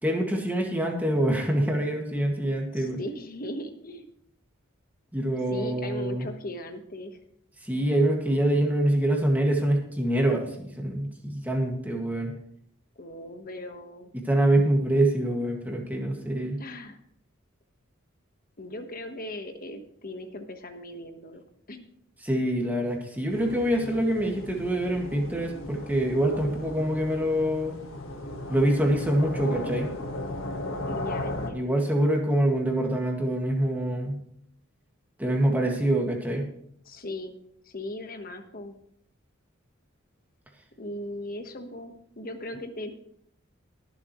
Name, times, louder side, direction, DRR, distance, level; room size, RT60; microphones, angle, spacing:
voice 1, 0.0-3.0 5.1-6.3 7.6-12.3 14.1-16.6 22.2-27.8 28.5-29.9 31.5-34.2 35.2-36.5, right 1 dB, 10° right, 0 dB, 2.0 m, -25 dB
voice 2, 2.7-4.1 5.5-7.2 13.0-14.1 16.6-17.0 18.6-21.4 21.7-21.9 30.8-31.7 36.8-37.3 37.6-38.7 40.8-42.9, left 1 dB, 45° left, 6 dB, 1.3 m, -38 dB
sound 1, 23.3-31.5, left 1 dB, 80° left, 1.5 m, -36 dB
21.5 x 7.4 x 3.1 m, 0.70 s
head